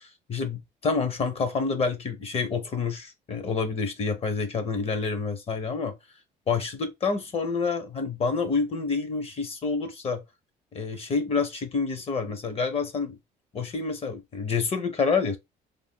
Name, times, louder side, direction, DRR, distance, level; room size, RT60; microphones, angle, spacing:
voice 1, 0.0-5.9 6.5-10.2 10.7-13.2 13.5-15.4, left 4 dB, 35° left, 0.6 m, -28 dB
2.6 x 2.1 x 3.5 m
cardioid pair, 110°, 17 cm